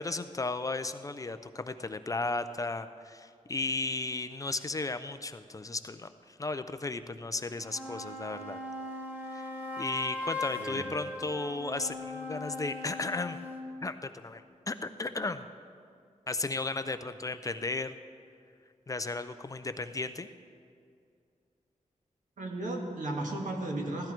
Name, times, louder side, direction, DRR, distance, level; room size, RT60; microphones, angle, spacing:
voice 1, 0.0-8.6 9.3-9.5 9.8-13.4 13.8-15.5 16.3-18.0 18.9-20.3, left 3 dB, 25° left, 10 dB, 0.4 m, -35 dB
sound 1, 7.5-13.7, left 2 dB, 15° right, 1.4 m, -39 dB
voice 2, 22.4-24.1, right 2 dB, 80° right, 0 dB, 1.9 m, -35 dB
16.5 x 13.0 x 4.5 m, 2.3 s
wide cardioid pair, 165°, 13 cm